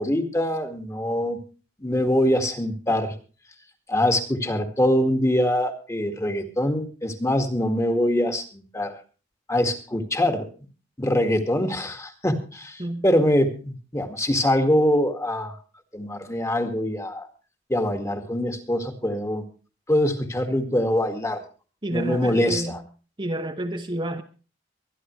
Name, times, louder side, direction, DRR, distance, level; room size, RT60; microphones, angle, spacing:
voice 1, 0.0-1.4 1.8-3.1 3.9-8.9 9.5-10.5 11.0-15.5 15.9-17.3 17.7-19.4 19.9-21.4 21.9-22.8, left 1 dB, 15° left, 7 dB, 1.9 m, -23 dB
voice 2, 21.8-22.8 23.2-24.2, right 1 dB, 25° right, 5 dB, 1.0 m, -29 dB
23.5 x 10.5 x 3.1 m, 0.35 s
head